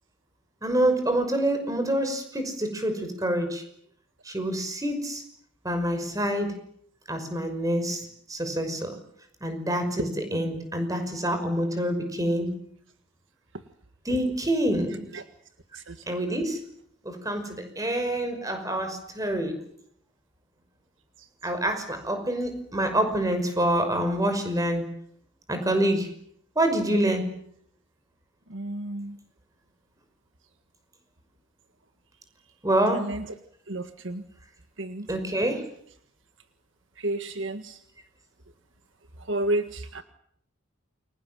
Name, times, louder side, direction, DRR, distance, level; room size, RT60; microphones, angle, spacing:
voice 1, 0.6-3.6 4.2-5.2 5.6-6.6 7.1-9.0 9.4-12.6 14.0-15.2 16.1-16.6 17.0-19.6 21.4-24.9 25.5-26.1 26.6-27.3 32.6-33.1 35.1-35.7, right 1 dB, 15° right, 7 dB, 5.9 m, -26 dB
voice 2, 28.6-29.0 33.7-34.2 37.0-37.6 39.3-39.6 40.0-40.1, right 1 dB, 65° right, 8 dB, 1.7 m, -29 dB
29.0 x 23.5 x 7.7 m, 0.68 s
head